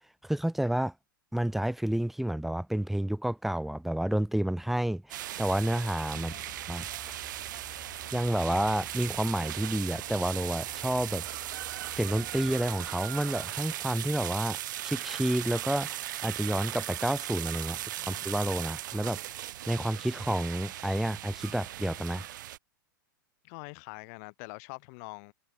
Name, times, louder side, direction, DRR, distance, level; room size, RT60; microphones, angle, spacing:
voice 1, 0.2-0.9 1.3-6.3 6.7-6.8 8.1-11.2 11.9-17.8 18.1-19.2 19.7-22.3, right 1 dB, ahead, 0.4 m, -30 dB
sound 1, 5.1-22.6, right 14 dB, 65° right, 0.8 m, -38 dB
voice 2, 6.1-6.5 17.7-18.3 23.4-25.3, left 36 dB, 45° left, 2.2 m, -45 dB
sound 2, 6.2-12.9, left 7 dB, 20° left, 3.9 m, -53 dB
hypercardioid pair, 115°, 11 cm